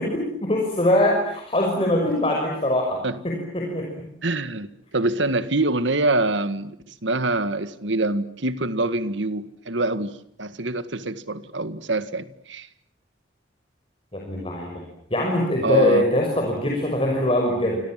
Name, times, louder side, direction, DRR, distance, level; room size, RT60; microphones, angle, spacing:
voice 1, 0.0-3.9 14.1-14.8 15.1-17.8, left 1 dB, 30° left, 6.0 m, -23 dB
voice 2, 4.2-12.7 15.6-16.2, right 2 dB, 70° right, 1.8 m, -25 dB
29.5 x 26.0 x 7.6 m
head